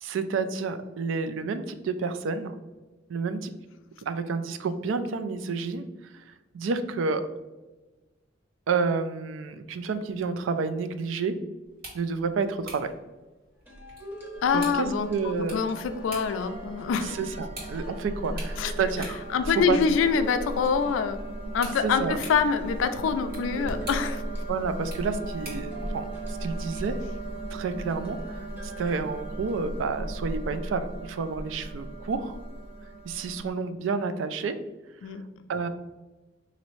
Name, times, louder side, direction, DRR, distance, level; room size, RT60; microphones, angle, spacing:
voice 1, 0.0-2.6 3.1-3.5 4.1-7.2 8.7-11.4 11.9-12.9 14.5-15.6 17.2-19.2 19.5-19.8 21.8-22.2 24.5-27.0 27.5-32.4 33.0-34.6 35.5-35.7, right 4 dB, 75° right, 10 dB, 0.3 m, -30 dB
sound 1, 11.6-25.8, right 2 dB, 55° right, 1.3 m, -48 dB
sound 2, 13.7-21.9 22.5-29.6, right 1 dB, 10° right, 0.7 m, -47 dB
sound 3, 14.3-33.5, right 1 dB, 30° left, 0.5 m, -37 dB
voice 2, 14.4-15.1 15.4-17.2 18.6-18.7 19.3-21.2 21.5-24.2 35.0-35.2, left 6 dB, 85° left, 9 dB, 0.3 m, -25 dB
4.0 x 2.6 x 3.1 m, 1.1 s
head